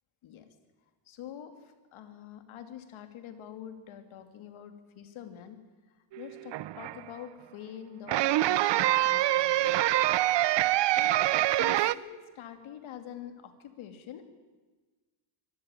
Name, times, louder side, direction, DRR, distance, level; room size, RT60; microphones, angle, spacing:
voice 1, 1.1-5.6 6.2-9.8 10.8-14.3, left 9 dB, 70° left, 8 dB, 2.7 m, -46 dB
sound 1, 6.1-7.0 8.1-11.9, right 15 dB, 55° right, 0.7 m, -25 dB
24.0 x 14.5 x 9.1 m, 1.3 s
cardioid pair, 130°, 50 cm